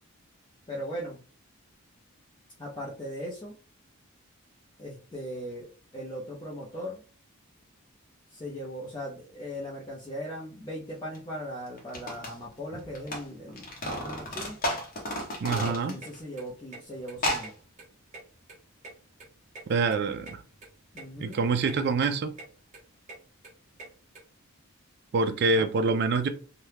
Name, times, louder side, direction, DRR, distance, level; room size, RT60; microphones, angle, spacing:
voice 1, 0.7-1.2 2.6-3.6 4.8-7.0 8.3-14.6 15.4-17.5 20.9-21.4 25.6-25.7, equal, 20° left, 0.5 m, -39 dB
sound 1, 11.1-11.2 11.8-13.2 13.5-16.2 16.5-16.6 17.1-17.5, left 1 dB, 40° left, 0.9 m, -32 dB
voice 2, 15.4-16.0 19.7-20.4 21.2-22.3 25.1-26.3, right 4 dB, 50° right, 0.3 m, -26 dB
sound 2, 15.6-24.2, right 2 dB, 35° right, 0.8 m, -48 dB
2.8 x 2.2 x 3.3 m
head